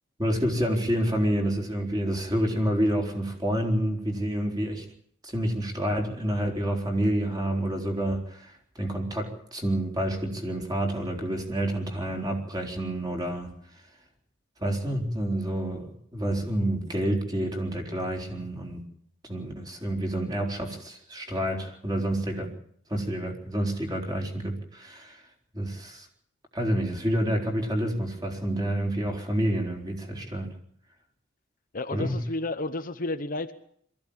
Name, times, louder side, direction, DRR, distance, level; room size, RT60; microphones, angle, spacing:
voice 1, 0.2-4.8 5.2-13.5 14.6-18.8 19.2-22.5 22.9-25.2 25.5-26.1 26.5-30.5 31.9-32.2, right 1 dB, 20° right, 2 dB, 4.2 m, -28 dB
voice 2, 31.7-33.6, left 2 dB, 40° left, 9 dB, 1.0 m, -31 dB
23.0 x 15.0 x 8.8 m, 0.65 s
head